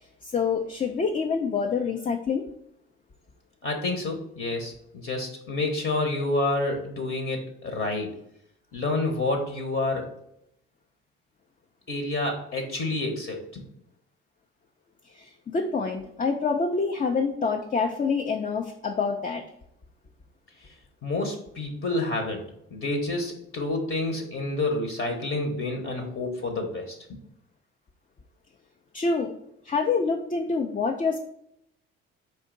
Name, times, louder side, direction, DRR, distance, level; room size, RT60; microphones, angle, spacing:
voice 1, 0.2-2.4 15.0-19.4 28.9-29.3 29.6-31.2, left 4 dB, 25° left, 3 dB, 0.5 m, -26 dB
voice 2, 3.6-8.1 8.7-10.1 11.9-13.6 21.0-22.4 22.7-27.0, left 2 dB, 45° left, 3 dB, 1.0 m, -28 dB
4.4 x 2.6 x 3.8 m, 0.75 s
hypercardioid pair, 60°, 30 cm